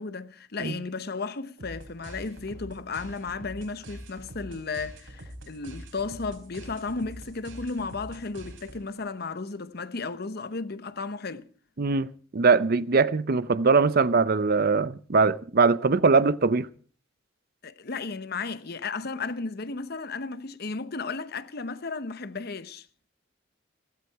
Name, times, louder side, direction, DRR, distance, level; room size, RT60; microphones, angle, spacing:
voice 1, 0.0-11.5 17.6-22.9, left 4 dB, 55° left, 0.9 m, -34 dB
sound 1, 1.6-9.0, right 1 dB, 75° right, 4.2 m, -44 dB
voice 2, 11.8-12.1 12.3-16.7, right 4 dB, 50° right, 0.6 m, -21 dB
16.0 x 16.0 x 4.7 m
head